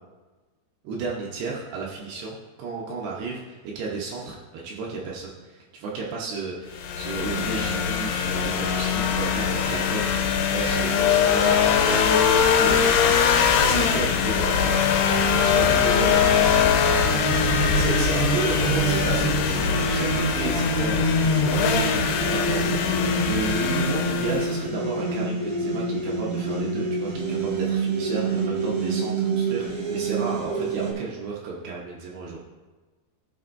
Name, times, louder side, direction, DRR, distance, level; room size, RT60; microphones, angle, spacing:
voice 1, 0.8-10.2 10.5-16.2 16.8-17.3 17.7-22.0 22.2-32.4, right 4 dB, 75° right, -3 dB, 3.0 m, -33 dB
sound 1, 6.8-24.6, left 7 dB, 80° left, 2.6 m, -22 dB
sound 2, 17.0-30.9, right 4 dB, 45° right, 1.8 m, -27 dB
18.5 x 6.1 x 2.6 m, 1.3 s
omnidirectional pair, 5.1 m